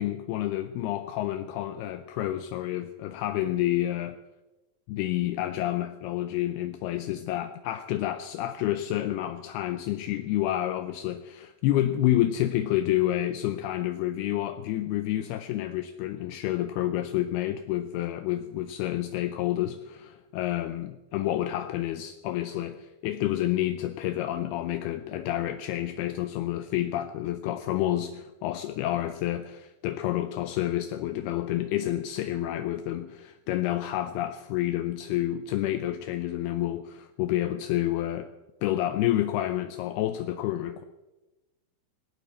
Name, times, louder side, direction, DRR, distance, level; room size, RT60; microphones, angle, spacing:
voice 1, 0.0-4.2 4.9-38.3 38.6-40.8, left 13 dB, 85° left, 10 dB, 2.2 m, -29 dB
18.5 x 16.5 x 4.3 m, 1.1 s
omnidirectional pair, 5.3 m